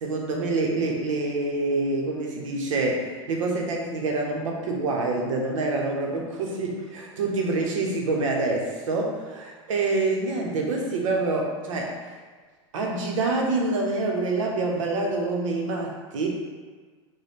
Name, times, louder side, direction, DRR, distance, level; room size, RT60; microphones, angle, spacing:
voice 1, 0.0-12.0 12.7-16.3, right 3 dB, 85° right, 0 dB, 0.8 m, -26 dB
3.2 x 2.2 x 4.1 m, 1.5 s
supercardioid pair, 130°, 16 cm